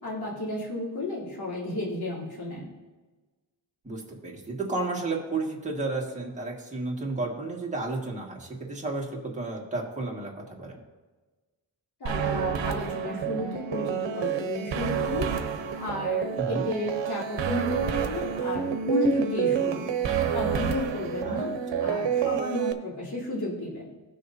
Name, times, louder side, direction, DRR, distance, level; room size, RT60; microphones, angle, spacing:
voice 1, 0.0-2.7 12.0-15.3 15.7-19.9 20.3-21.5 21.8-23.9, left 2 dB, 55° left, -6 dB, 3.5 m, -32 dB
voice 2, 3.8-10.8 16.4-16.7 21.2-21.4, right 3 dB, 15° right, -3 dB, 1.9 m, -32 dB
sound 1, 12.1-22.7, right 8 dB, 75° right, 0.9 m, -29 dB
18.0 x 6.4 x 2.8 m, 1.3 s
wide cardioid pair, 160°, 45 cm